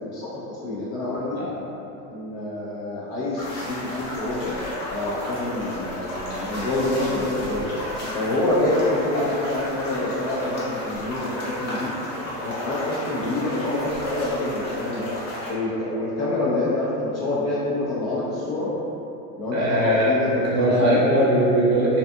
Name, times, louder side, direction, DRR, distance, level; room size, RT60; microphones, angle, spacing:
voice 1, 0.0-1.4 2.1-4.5 4.9-7.7 8.1-11.9 12.4-15.1 15.5-18.7 19.4-21.0, left 2 dB, 35° left, -8 dB, 0.5 m, -27 dB
sound 1, 3.4-15.5, equal, 65° left, 1.0 m, -32 dB
voice 2, 19.5-20.1 20.4-22.0, right 1 dB, 35° right, -7 dB, 0.7 m, -20 dB
2.6 x 2.4 x 2.3 m, 2.8 s
hypercardioid pair, 95°, 50 cm